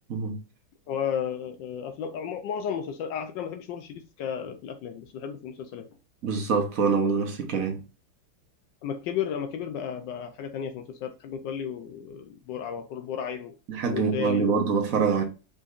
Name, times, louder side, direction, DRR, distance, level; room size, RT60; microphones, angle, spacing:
voice 1, 0.9-5.9 8.8-13.5 13.9-14.6, left 8 dB, 75° left, 1.3 m, -33 dB
voice 2, 6.2-7.8 13.7-15.2, right 5 dB, 55° right, 1.2 m, -25 dB
5.0 x 4.0 x 2.4 m
omnidirectional pair, 2.0 m